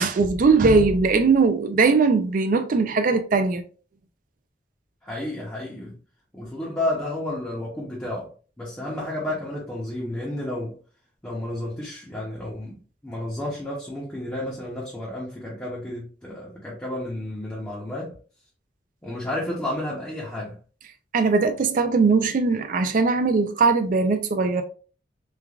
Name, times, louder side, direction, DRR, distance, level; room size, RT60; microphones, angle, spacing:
voice 1, 0.0-3.6 21.1-24.6, right 4 dB, 45° right, 0.4 m, -20 dB
voice 2, 5.0-6.0 6.3-10.8 11.2-18.2 19.0-20.6, left 1 dB, 10° left, 0.7 m, -31 dB
3.2 x 2.3 x 2.3 m
head